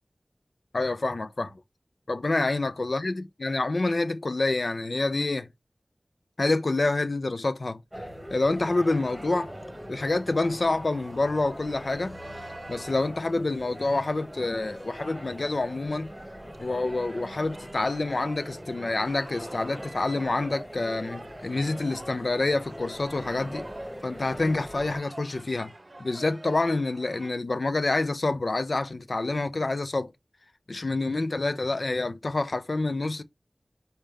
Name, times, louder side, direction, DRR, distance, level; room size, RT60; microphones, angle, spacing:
voice 1, 0.7-1.5 2.1-5.5 6.4-7.8 8.3-9.5 9.9-12.2 12.7-16.1 16.6-23.7 24.0-25.7 26.0-30.1 30.7-33.2, left 2 dB, 70° left, 0.5 m, -27 dB
sound 1, 7.9-25.0, equal, 5° right, 1.5 m, -42 dB
sound 2, 8.7-27.3, right 2 dB, 45° right, 0.7 m, -48 dB
4.2 x 3.4 x 3.4 m
wide cardioid pair, 50°, 0 cm